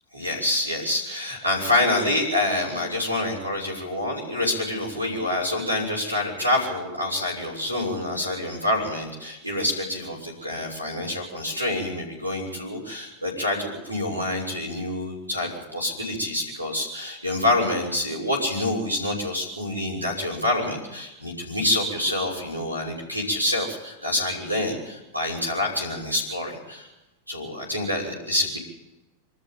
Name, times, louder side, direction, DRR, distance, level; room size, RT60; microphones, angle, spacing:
voice 1, 0.1-26.9 27.3-28.6, left 1 dB, 85° right, -2 dB, 6.2 m, -27 dB
24.5 x 13.5 x 8.9 m, 0.98 s
figure-of-eight pair, 90°, 0 cm